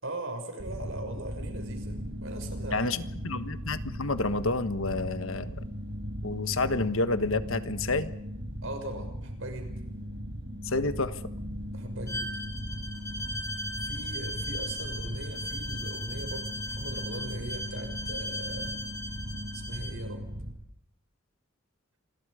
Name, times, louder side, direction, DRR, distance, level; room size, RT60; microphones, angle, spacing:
voice 1, 0.0-2.9 8.6-9.7 11.7-12.3 13.8-18.8 19.5-20.3, right 2 dB, 70° right, 6 dB, 6.1 m, -40 dB
sound 1, 0.6-20.5, equal, 55° right, 5.7 m, -38 dB
voice 2, 2.7-5.6 6.2-8.1 10.6-11.2, left 3 dB, 75° left, 11 dB, 1.4 m, -29 dB
Bowed string instrument, 12.1-20.0, left 1 dB, 15° left, 3.3 m, -38 dB
27.5 x 22.0 x 5.0 m, 0.81 s
head